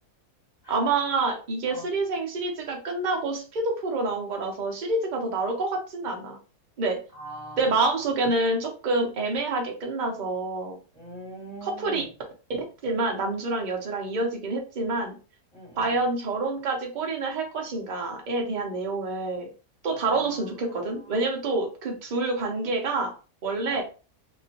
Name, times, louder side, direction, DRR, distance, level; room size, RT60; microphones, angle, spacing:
voice 1, 0.7-6.4 6.8-7.0 7.6-10.8 11.6-12.0 12.8-15.2 15.8-19.5 19.8-23.1 23.4-23.8, right 3 dB, 40° right, 1 dB, 0.7 m, -27 dB
voice 2, 7.2-7.6 10.9-12.0 15.5-15.9 20.1-20.4 23.7-23.8, right 1 dB, ahead, -5 dB, 1.5 m, -41 dB
2.9 x 2.6 x 2.8 m, 0.34 s
omnidirectional pair, 1.8 m